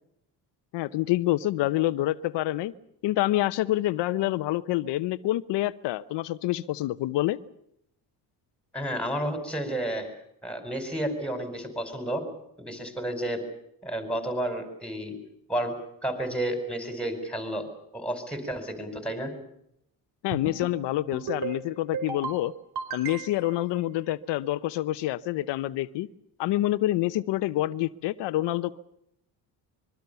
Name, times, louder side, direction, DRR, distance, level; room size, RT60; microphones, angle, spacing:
voice 1, 0.7-2.7 3.0-7.4 20.2-22.5 22.9-26.1 26.4-28.8, left 15 dB, 90° left, 12 dB, 1.0 m, -27 dB
voice 2, 8.7-10.1 10.4-12.2 12.6-13.4 13.8-15.1 15.5-15.7 16.0-17.7 17.9-19.3, right 1 dB, 5° left, 8 dB, 4.9 m, -31 dB
sound 1, 20.3-20.8 21.1-21.6 21.9-22.4 22.7-23.5, right 5 dB, 65° right, 4.5 m, -34 dB
25.0 x 22.5 x 6.9 m, 0.76 s
cardioid pair, 145°, 41 cm